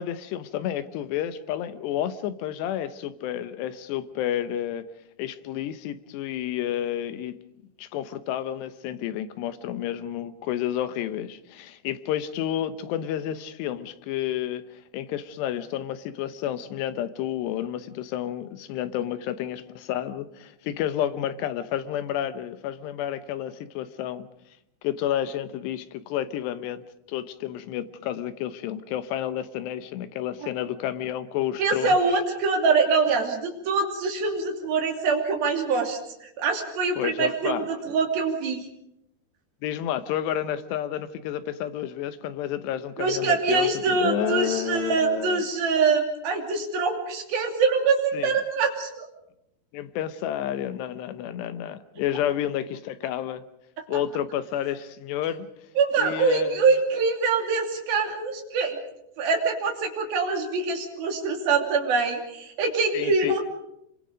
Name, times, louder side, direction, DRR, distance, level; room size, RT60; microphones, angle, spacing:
voice 1, 0.0-4.8 5.2-7.4 7.8-24.3 24.8-26.8 27.1-32.0 37.0-37.7 39.6-45.4 48.1-48.3 49.7-53.4 53.9-55.5 56.0-56.7 62.9-63.4, left 11 dB, 80° left, 12 dB, 3.1 m, -30 dB
voice 2, 31.6-38.6 43.0-49.1 55.8-58.8 59.2-63.4, right 4 dB, 60° right, 3 dB, 4.5 m, -24 dB
27.5 x 23.5 x 5.2 m, 0.80 s
omnidirectional pair, 5.0 m